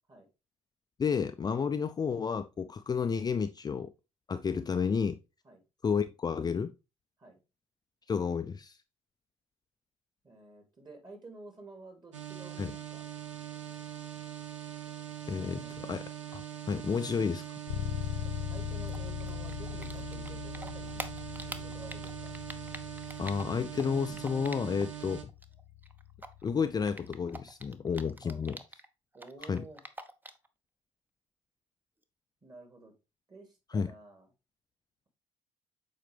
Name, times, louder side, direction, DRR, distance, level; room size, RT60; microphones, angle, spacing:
voice 1, 1.0-3.9 4.3-5.2 5.8-6.7 8.1-8.8 12.6-12.7 15.3-17.5 23.2-25.2 26.4-28.6 29.5-29.6 33.7-33.9, left 6 dB, 25° left, 0.5 m, -31 dB
voice 2, 10.2-13.0 15.3-15.7 18.2-21.1 21.5-22.4 28.2-28.6 29.1-29.8 32.4-32.9 33.3-34.3, right 2 dB, 30° right, 2.8 m, -51 dB
sound 1, 12.1-25.2, right 11 dB, 90° right, 0.7 m, -42 dB
Bass guitar, 17.7-27.4, left 11 dB, 80° left, 0.9 m, -41 dB
Typing, 18.9-20.3 20.5-25.0 25.3-28.9 29.1-30.5, right 1 dB, 10° right, 0.8 m, -45 dB
7.5 x 4.3 x 3.3 m
hypercardioid pair, 50°, 15 cm